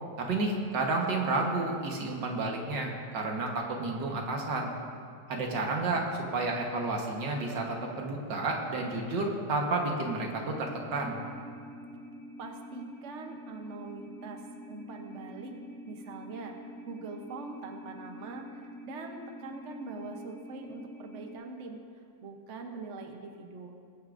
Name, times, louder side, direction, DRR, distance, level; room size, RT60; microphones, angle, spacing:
voice 1, 0.2-4.7 5.3-11.2, right 2 dB, 70° right, 1 dB, 1.9 m, -31 dB
sound 1, 10.0-21.3, equal, 10° left, 1.4 m, -47 dB
voice 2, 12.4-14.4 14.7-15.5 15.9-16.6 16.9-21.8 22.2-23.7, right 3 dB, 50° right, 3 dB, 1.0 m, -43 dB
21.5 x 9.4 x 2.6 m, 2.4 s
omnidirectional pair, 2.1 m